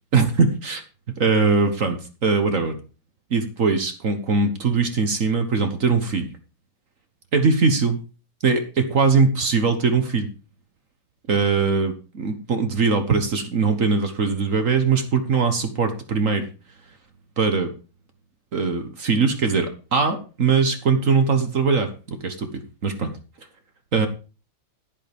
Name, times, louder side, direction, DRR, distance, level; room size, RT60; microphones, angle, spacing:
voice 1, 0.1-0.8 1.2-2.8 3.3-6.3 7.3-8.0 8.4-10.3 11.3-16.5 17.4-17.7 18.5-23.1 23.9-24.1, right 4 dB, 45° right, 7 dB, 1.3 m, -21 dB
10.5 x 10.5 x 3.5 m, 0.34 s
omnidirectional pair, 2.4 m